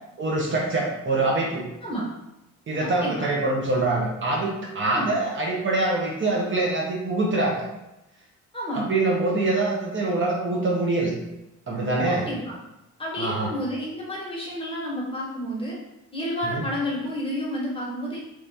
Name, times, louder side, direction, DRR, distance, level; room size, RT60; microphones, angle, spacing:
voice 1, 0.2-1.7 2.7-7.6 8.8-11.1 11.7-12.3 13.2-13.5 16.4-16.7, right 2 dB, 40° right, -2 dB, 0.8 m, -24 dB
voice 2, 2.8-3.3 4.8-5.1 8.5-9.1 12.1-12.6 13.0-15.7 16.1-18.2, equal, 20° left, -4 dB, 1.3 m, -30 dB
3.2 x 2.6 x 3.4 m, 0.92 s
cardioid pair, 90°, 30 cm